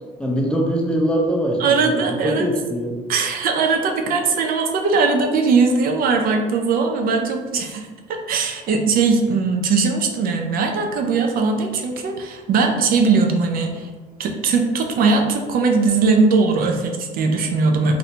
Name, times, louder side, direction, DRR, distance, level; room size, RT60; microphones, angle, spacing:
voice 1, 0.2-2.9, equal, 5° left, -1 dB, 0.6 m, -22 dB
voice 2, 1.6-2.5 3.1-13.9 14.2-18.0, right 4 dB, 60° right, 3 dB, 0.4 m, -20 dB
2.7 x 2.6 x 3.2 m, 1.3 s
cardioid pair, 110°, 17 cm